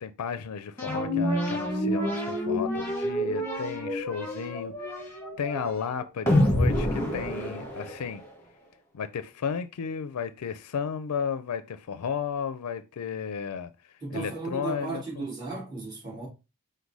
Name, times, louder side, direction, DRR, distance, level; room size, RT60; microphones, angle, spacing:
voice 1, 0.0-8.2 8.9-13.7 14.1-15.2, left 6 dB, 85° left, 0.4 m, -34 dB
sound 1, 0.8-8.3, equal, 10° left, 1.5 m, -28 dB
voice 2, 14.0-16.3, right 3 dB, 20° right, 1.9 m, -35 dB
5.3 x 2.2 x 4.6 m
head